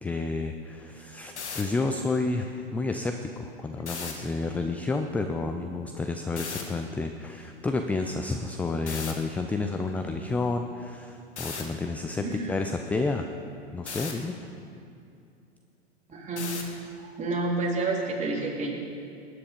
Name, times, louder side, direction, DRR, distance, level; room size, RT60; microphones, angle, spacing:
voice 1, 0.0-13.3 13.7-14.4, left 3 dB, 5° left, 6 dB, 0.3 m, -30 dB
sound 1, 1.2-1.6 3.8-4.1 6.4-6.6 8.9-9.1 11.4-11.6 13.9-14.1 16.4-16.7, left 5 dB, 85° left, 2.0 m, -35 dB
voice 2, 12.2-12.5 16.1-16.5 17.0-18.7, right 3 dB, 20° right, -2 dB, 3.0 m, -29 dB
19.0 x 9.8 x 5.2 m, 2.5 s
hypercardioid pair, 105°, 33 cm